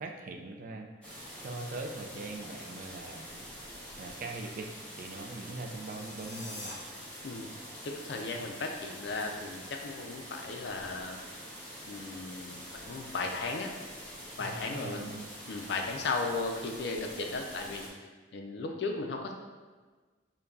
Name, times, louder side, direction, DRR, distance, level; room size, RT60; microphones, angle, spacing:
voice 1, 0.0-3.5 4.0-6.7 14.4-15.2, right 2 dB, 45° right, 3 dB, 0.3 m, -42 dB
sound 1, 1.0-17.9, equal, 5° left, 0.6 m, -46 dB
sound 2, 5.6-6.7, left 1 dB, 40° left, 0.9 m, -45 dB
voice 2, 7.8-11.2 11.9-13.7 14.4-15.1 15.5-19.3, left 3 dB, 60° left, 3 dB, 0.4 m, -36 dB
5.1 x 2.2 x 2.3 m, 1.4 s
head